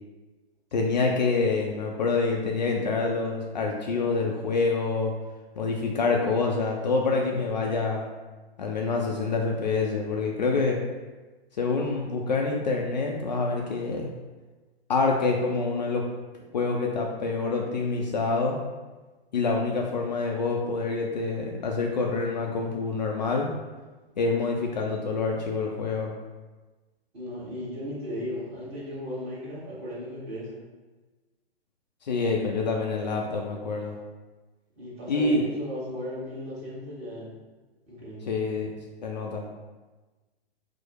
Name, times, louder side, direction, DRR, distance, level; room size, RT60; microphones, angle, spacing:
voice 1, 0.7-5.1 5.6-8.1 8.6-10.8 11.6-14.1 14.9-16.0 16.5-18.6 19.3-23.5 24.2-26.1 32.0-34.0 35.1-35.4 38.3-38.7 39.0-39.4, left 4 dB, 45° left, 0 dB, 0.5 m, -26 dB
voice 2, 27.1-30.6 34.8-37.3 37.9-38.3, left 1 dB, 20° right, -7 dB, 1.3 m, -36 dB
4.6 x 2.0 x 4.5 m, 1.2 s
figure-of-eight pair, 120°, 31 cm